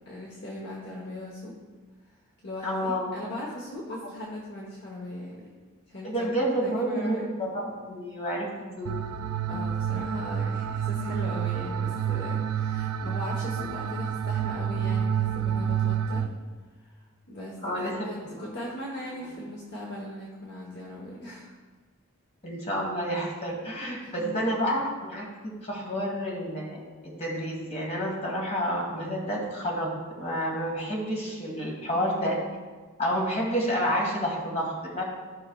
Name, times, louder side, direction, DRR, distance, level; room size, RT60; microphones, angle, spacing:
voice 1, 0.1-1.5 2.4-5.5 5.9-6.3 6.6-7.2 9.5-16.3 16.8-21.5 23.8-24.4 31.9-32.2, left 1 dB, 50° left, -3 dB, 1.0 m, -39 dB
voice 2, 2.6-3.2 6.0-8.5 8.8-8.9 17.6-18.1 18.3-18.5 22.4-25.3 25.6-29.9 30.2-32.4 33.0-35.0, equal, 30° left, -2 dB, 1.7 m, -29 dB
sound 1, 8.9-16.3, right 8 dB, 90° right, 0.4 m, -29 dB
14.0 x 5.6 x 2.3 m, 1.4 s
head